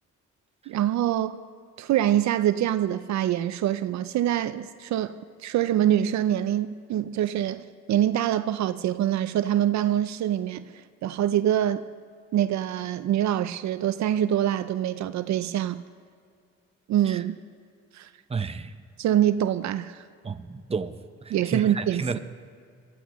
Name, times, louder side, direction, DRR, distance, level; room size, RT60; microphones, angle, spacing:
voice 1, 0.7-1.4 1.8-5.2 5.4-10.6 11.0-11.8 12.3-15.8 16.9-17.4 17.9-18.1 19.0-20.0 21.3-22.2, right 11 dB, 65° right, 0.5 m, -25 dB
voice 2, 18.3-18.7 20.2-22.2, right 4 dB, 20° right, 0.7 m, -32 dB
22.0 x 14.5 x 3.1 m
cardioid pair, 90°, 30 cm